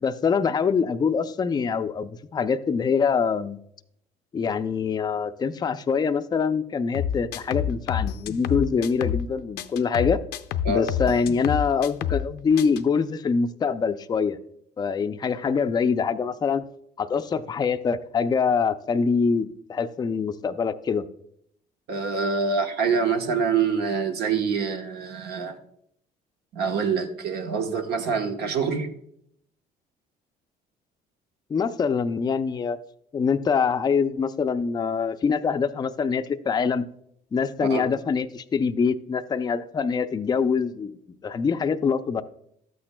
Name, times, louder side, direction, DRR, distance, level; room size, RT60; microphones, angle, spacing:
voice 1, 0.0-3.6 4.3-10.2 10.7-14.4 14.8-16.6 17.0-21.0 31.5-32.8 33.1-36.8 37.3-40.9 41.2-42.2, left 5 dB, 25° left, 9 dB, 0.4 m, -24 dB
sound 1, 6.9-9.3 9.6-12.3 12.6-12.8, left 9 dB, 75° left, 0.5 m, -28 dB
voice 2, 21.9-25.6 26.5-28.9 37.6-37.8, right 5 dB, 70° right, 5 dB, 1.1 m, -25 dB
12.5 x 8.6 x 2.2 m, 0.71 s
cardioid pair, 110°, 17 cm